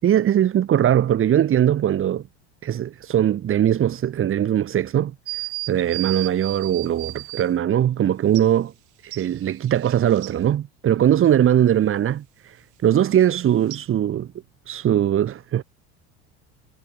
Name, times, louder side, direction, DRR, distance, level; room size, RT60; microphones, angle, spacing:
voice 1, 0.0-2.2 2.6-8.7 9.0-14.3 14.7-15.6, right 10 dB, 40° right, 5.6 m, -20 dB
sound 1, 5.3-7.5 8.4-8.5 9.1-10.3 13.7-13.8, right 23 dB, 60° right, 4.6 m, -33 dB
supercardioid pair, 115°, 34 cm